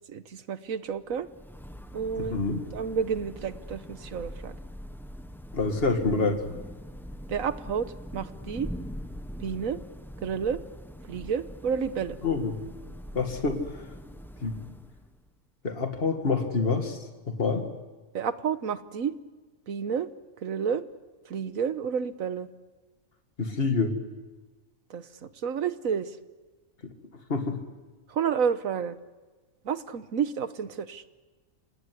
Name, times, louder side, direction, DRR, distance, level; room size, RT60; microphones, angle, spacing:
voice 1, 0.1-1.3 1.9-2.4 2.7-4.5 7.3-8.7 9.4-9.8 10.2-10.6 11.1-12.2 18.1-19.1 19.7-20.1 20.4-20.8 21.3-22.5 24.9-26.2 28.1-29.0 29.6-31.0, right 7 dB, 85° right, 12 dB, 1.5 m, -30 dB
Thunder / Rain, 1.0-15.3, equal, ahead, 0.8 m, -42 dB
voice 2, 2.1-2.6 5.5-6.4 12.2-12.6 13.1-13.8 14.4-14.6 15.6-17.7 23.4-23.9 27.3-27.6, left 4 dB, 45° left, 5 dB, 2.3 m, -27 dB
26.5 x 19.0 x 9.7 m, 1.3 s
omnidirectional pair, 1.4 m